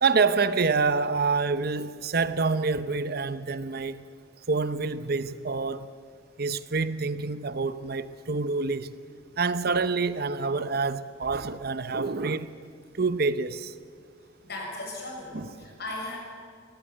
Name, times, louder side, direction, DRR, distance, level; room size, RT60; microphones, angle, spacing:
voice 1, 0.0-4.1 4.5-5.9 6.4-8.9 9.4-12.6 13.0-13.7 15.3-15.5, right 4 dB, 55° right, 0.8 m, -27 dB
voice 2, 14.4-16.2, left 2 dB, 55° left, 6.9 m, -37 dB
25.0 x 17.5 x 8.6 m
head